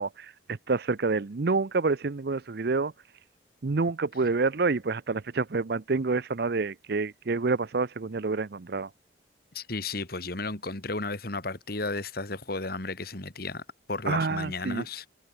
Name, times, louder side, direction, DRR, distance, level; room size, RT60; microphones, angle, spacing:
voice 1, 0.0-2.9 3.6-8.9 14.1-14.8, right 4 dB, 55° right, 0.6 m, -28 dB
voice 2, 9.5-13.6 13.9-15.1, left 3 dB, 55° left, 2.3 m, -33 dB
head